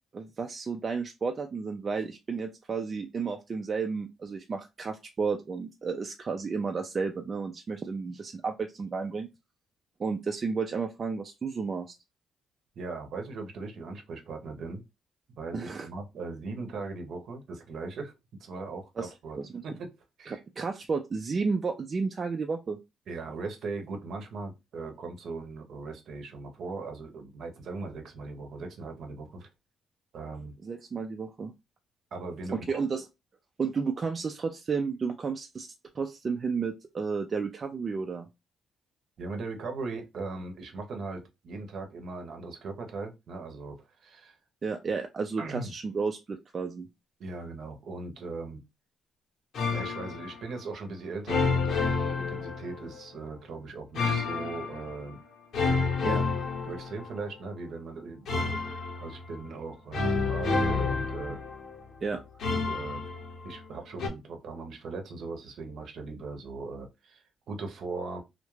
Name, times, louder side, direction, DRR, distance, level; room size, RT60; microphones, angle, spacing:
voice 1, 0.1-9.3 10.0-11.9 15.5-15.9 19.0-19.1 19.4-19.6 20.3-22.8 30.6-31.5 32.5-33.1 33.6-35.7 36.0-38.3 44.6-46.9 56.0-56.2 62.0-62.2, right 5 dB, 40° right, 4 dB, 0.3 m, -32 dB
voice 2, 12.8-14.8 15.4-18.1 18.4-19.4 19.6-19.9 20.2-20.4 23.1-29.5 30.1-30.5 32.1-32.7 39.2-44.4 45.4-45.7 47.2-48.6 49.7-55.2 56.6-58.6 59.0-61.4 62.5-63.0 63.4-68.2, right 3 dB, 65° right, 4 dB, 0.7 m, -39 dB
sound 1, 49.5-50.4 51.3-53.0 53.9-55.0 55.5-57.3 58.3-59.4 59.9-61.8 62.4-63.7 64.0-64.1, left 4 dB, 70° left, 0.8 m, -29 dB
2.3 x 2.1 x 3.0 m, 0.23 s
cardioid pair, 90°, 0 cm